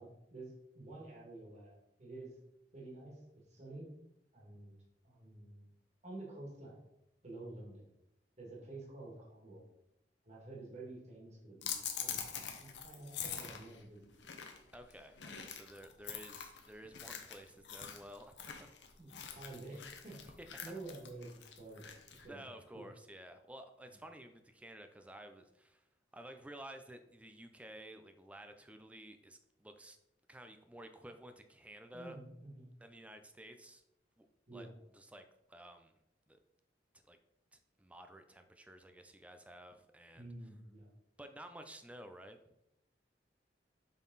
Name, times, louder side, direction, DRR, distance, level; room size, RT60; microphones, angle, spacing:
voice 1, 0.0-2.3 2.7-3.2 3.5-3.9 4.3-4.8 5.0-5.6 6.0-6.8 7.2-7.9 8.4-9.6 10.2-11.7 12.0-14.1 19.0-20.3 20.6-22.4 22.7-22.9 31.9-32.7 34.5-34.7 40.1-40.9, right 2 dB, 40° right, -3 dB, 2.0 m, -50 dB
sound 1, 11.6-22.3, left 8 dB, 80° left, 0.8 m, -45 dB
voice 2, 14.7-18.7 20.4-20.8 22.3-25.8 26.1-30.0 30.3-32.2 32.8-33.8 34.2-34.3 34.5-34.7 34.9-36.0 36.3-36.4 37.1-37.2 37.5-40.3 41.2-42.4, right 1 dB, 10° right, 7 dB, 0.5 m, -53 dB
7.3 x 4.0 x 4.0 m, 0.81 s
head